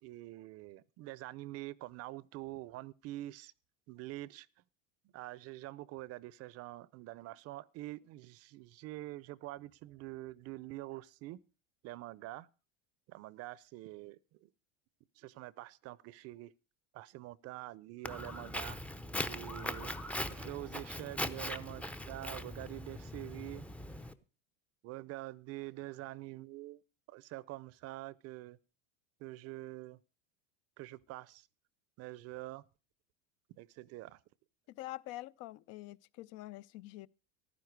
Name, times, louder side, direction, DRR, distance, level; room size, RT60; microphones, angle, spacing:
voice 1, 0.0-3.5 3.9-4.5 5.1-11.4 11.8-12.5 13.1-14.5 15.2-16.5 16.9-18.8 19.2-20.0 20.3-23.6 24.8-26.8 27.1-28.6 29.2-30.0 30.8-31.5 32.0-32.6 33.6-34.2, right 17 dB, 40° right, 0.7 m, -46 dB
Walk footsteps, 18.0-24.1, left 1 dB, 5° left, 0.6 m, -40 dB
voice 2, 34.7-37.1, left 17 dB, 45° left, 0.6 m, -46 dB
15.0 x 12.0 x 4.6 m
supercardioid pair, 150°, 37 cm